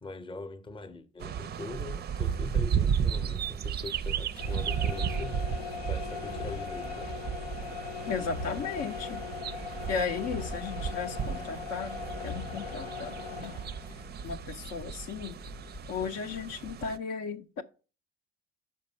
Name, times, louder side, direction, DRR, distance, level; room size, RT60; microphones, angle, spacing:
voice 1, 0.0-5.5 5.8-7.2, left 3 dB, 15° left, 0.8 m, -42 dB
sound 1, 1.2-17.0, right 8 dB, 35° right, 0.5 m, -34 dB
sound 2, 4.2-16.1, left 4 dB, 80° left, 1.0 m, -39 dB
voice 2, 8.1-9.2 9.9-13.5 14.2-15.4 15.9-17.6, left 5 dB, 55° left, 0.6 m, -35 dB
5.4 x 5.3 x 5.3 m
hypercardioid pair, 50°, 30 cm